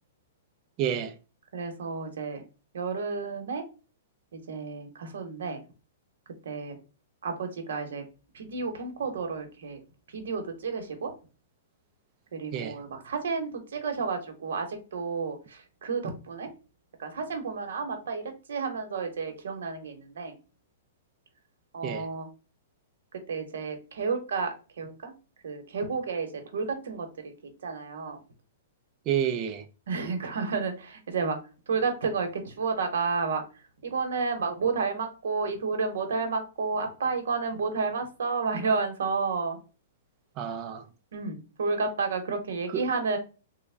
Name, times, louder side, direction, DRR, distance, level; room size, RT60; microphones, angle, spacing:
voice 1, 0.8-1.2 12.5-12.8 21.8-22.1 29.1-29.6 40.4-40.8 42.7-42.8, right 9 dB, 25° right, 0.3 m, -29 dB
voice 2, 1.5-2.4 2.7-3.6 4.3-5.6 6.4-6.8 7.2-8.0 8.3-9.8 10.1-11.1 12.3-16.5 17.0-20.3 21.7-22.3 23.3-25.1 25.4-28.2 29.9-31.4 31.7-33.4 33.8-39.6 41.1-43.2, right 4 dB, 80° right, 0.9 m, -31 dB
3.4 x 2.1 x 3.3 m
hypercardioid pair, 170°, 0 cm